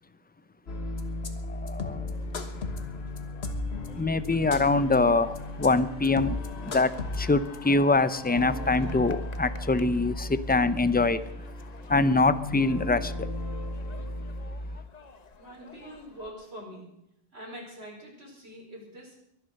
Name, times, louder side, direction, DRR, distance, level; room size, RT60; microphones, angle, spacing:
sound 1, 0.7-14.8, left 2 dB, 75° left, 1.6 m, -35 dB
voice 1, 1.2-2.2 3.9-11.3 11.9-13.3, left 3 dB, 15° left, 0.4 m, -24 dB
sound 2, 2.1-16.3, left 4 dB, 40° left, 1.0 m, -49 dB
voice 2, 15.4-16.9 17.3-19.2, equal, 85° right, 5.2 m, -44 dB
22.5 x 8.0 x 6.5 m
omnidirectional pair, 1.1 m